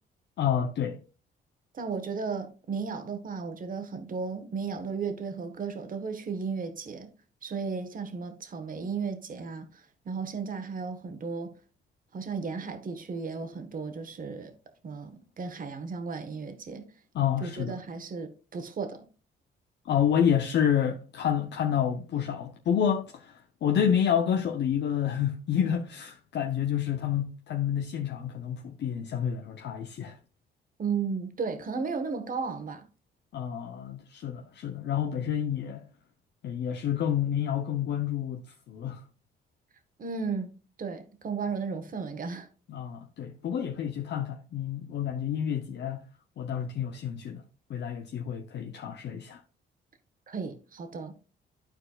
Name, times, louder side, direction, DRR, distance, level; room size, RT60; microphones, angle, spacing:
voice 1, 0.4-1.0 17.1-17.8 19.9-23.3 23.6-30.2 33.3-35.9 36.4-38.4 38.7-39.0 42.7-46.0 46.4-47.4 47.7-49.4, left 9 dB, 60° left, 0.7 m, -29 dB
voice 2, 1.7-7.1 7.4-9.7 10.0-11.5 12.1-14.5 14.8-16.9 17.4-19.1 30.8-32.8 40.0-40.5 40.8-42.5 50.3-51.1, right 5 dB, 45° right, 1.3 m, -34 dB
13.0 x 4.4 x 2.4 m
cardioid pair, 90°, 20 cm